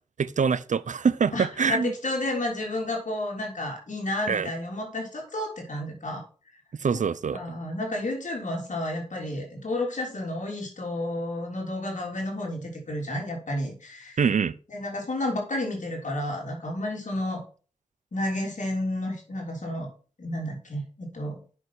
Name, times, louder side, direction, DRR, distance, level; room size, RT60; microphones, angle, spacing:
voice 1, 0.2-1.9 4.3-4.5 6.8-7.4 14.2-14.5, right 6 dB, 80° right, 0.5 m, -24 dB
voice 2, 1.3-6.2 6.9-7.0 7.3-14.2 14.7-17.4 18.1-19.9 20.2-21.4, left 1 dB, 75° left, 3.5 m, -31 dB
7.9 x 6.2 x 6.0 m
cardioid pair, 40°, 13 cm